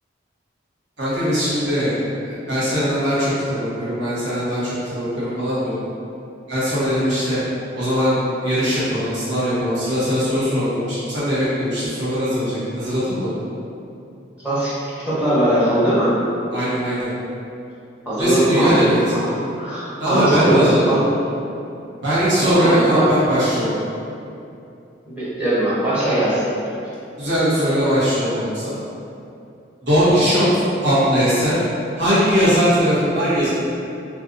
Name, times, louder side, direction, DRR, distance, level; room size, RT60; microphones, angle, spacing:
voice 1, 1.0-2.0 2.2-5.8 6.5-7.4 7.7-13.3 16.5-17.1 18.2-19.0 20.0-20.8 22.0-23.7 27.2-28.8 29.9-30.5 30.8-31.5 32.0-33.5, equal, 75° right, -11 dB, 1.0 m, -20 dB
voice 2, 15.0-16.1 18.1-19.2 19.6-21.0 22.4-23.1 25.0-26.4, right 1 dB, 10° right, -12 dB, 0.8 m, -20 dB
2.5 x 2.3 x 2.5 m, 2.7 s
head